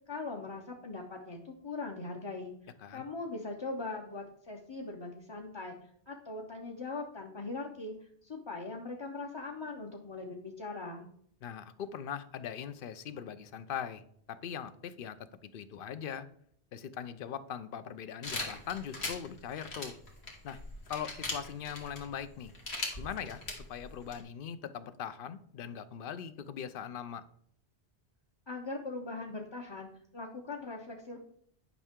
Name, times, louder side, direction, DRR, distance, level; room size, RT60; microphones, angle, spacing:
voice 1, 0.1-11.1 28.5-31.2, left 3 dB, 30° left, -1 dB, 0.7 m, -41 dB
voice 2, 11.4-14.0 14.3-16.3 16.7-19.9 20.4-20.6 20.9-22.5 23.0-27.2, left 8 dB, 60° left, 13 dB, 0.7 m, -41 dB
sound 1, 18.2-24.2, left 2 dB, 80° left, 1.9 m, -40 dB
9.5 x 5.5 x 3.6 m, 0.65 s
omnidirectional pair, 1.1 m